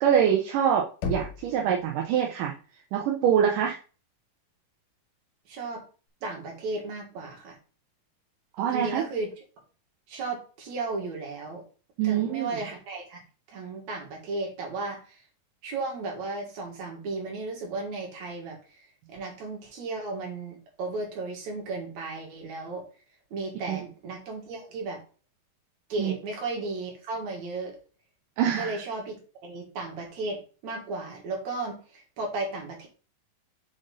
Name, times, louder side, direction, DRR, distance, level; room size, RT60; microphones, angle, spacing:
voice 1, 0.0-2.5 2.9-3.8 8.6-9.0 12.0-12.5 23.7-23.8 26.0-26.1 28.4-28.7, right 9 dB, 80° right, 0 dB, 2.3 m, -24 dB
Knock, 1.0-1.9, left 4 dB, 65° left, 2.1 m, -34 dB
voice 2, 5.5-5.8 6.2-7.6 8.7-9.4 10.1-11.6 12.0-13.2 13.5-15.2 15.6-22.8 23.3-25.0 25.9-27.8 28.6-32.9, right 3 dB, 60° right, 0 dB, 3.1 m, -35 dB
5.7 x 5.1 x 4.0 m, 0.37 s
omnidirectional pair, 3.8 m